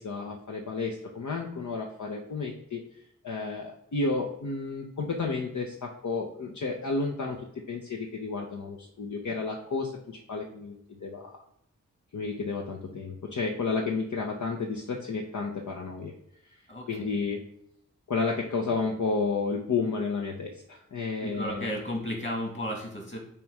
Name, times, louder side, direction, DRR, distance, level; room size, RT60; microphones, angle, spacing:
voice 1, 0.0-2.8 3.2-11.4 12.1-16.1 16.9-17.4 18.1-21.8, left 4 dB, 65° left, 0 dB, 0.9 m, -32 dB
voice 2, 16.7-17.2 21.2-23.2, equal, 40° left, 1 dB, 2.5 m, -34 dB
6.9 x 3.2 x 4.9 m, 0.74 s
cardioid pair, 40°, 32 cm